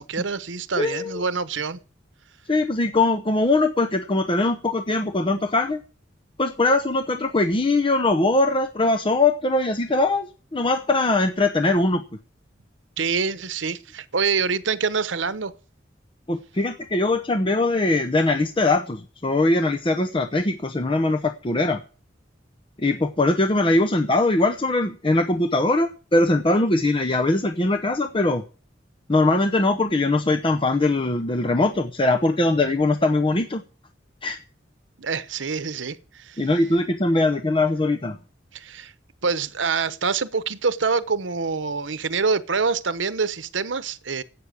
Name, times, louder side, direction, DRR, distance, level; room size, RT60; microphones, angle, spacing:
voice 1, 0.0-1.8 13.0-15.5 35.0-36.5 38.5-38.9 39.2-44.2, right 5 dB, 85° right, 0.9 m, -26 dB
voice 2, 0.8-1.1 2.5-5.8 6.4-10.3 10.5-12.0 16.3-21.8 22.8-28.4 29.1-33.6 34.2-34.4 36.4-38.2, left 2 dB, 30° left, 0.8 m, -21 dB
12.0 x 8.5 x 8.1 m
head